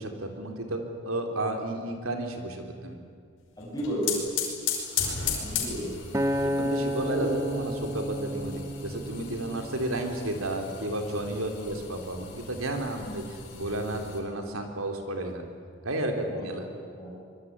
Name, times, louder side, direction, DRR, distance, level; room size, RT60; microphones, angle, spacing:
voice 1, 0.0-3.0 6.4-15.4 15.8-16.7, right 1 dB, 90° right, 4 dB, 3.9 m, -32 dB
sound 1, 3.6-14.2, left 7 dB, 70° left, 5.5 m, -36 dB
voice 2, 3.6-4.2 5.4-6.0 7.0-7.3 11.5-11.7 16.3-16.5 17.0-17.1, equal, 20° left, -5 dB, 6.5 m, -33 dB
Acoustic guitar, 6.1-10.5 11.1-11.3, equal, 15° right, 0.9 m, -31 dB
24.5 x 23.0 x 9.8 m, 2.1 s
head